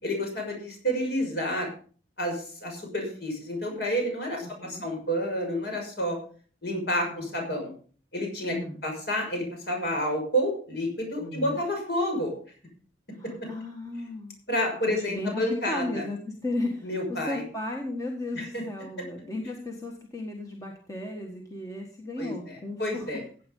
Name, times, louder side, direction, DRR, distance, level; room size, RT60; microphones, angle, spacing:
voice 1, 0.0-1.7 2.2-6.2 6.6-7.7 8.1-8.6 8.8-12.3 14.5-16.0 16.8-17.4 18.3-18.6 22.2-23.2, equal, 55° left, 2 dB, 6.2 m, -29 dB
voice 2, 4.4-4.8 7.1-7.3 8.5-8.8 11.2-11.6 13.1-14.4 14.9-23.1, left 1 dB, 15° left, 1 dB, 1.6 m, -35 dB
15.5 x 8.6 x 5.4 m, 0.43 s
head